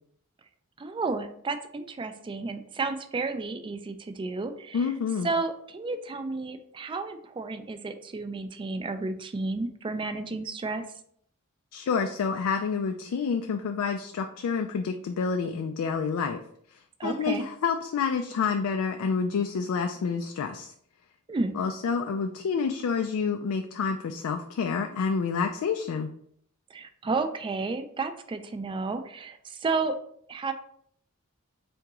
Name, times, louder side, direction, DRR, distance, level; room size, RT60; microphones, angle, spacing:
voice 1, 0.8-4.9 5.2-10.8 17.0-17.4 21.3-21.6 26.7-30.0 30.3-30.5, right 3 dB, 25° right, 8 dB, 0.3 m, -32 dB
voice 2, 4.7-5.3 11.7-16.4 16.7-20.7 21.5-26.1, left 5 dB, 70° left, 5 dB, 0.3 m, -28 dB
3.7 x 3.5 x 2.9 m, 0.65 s
head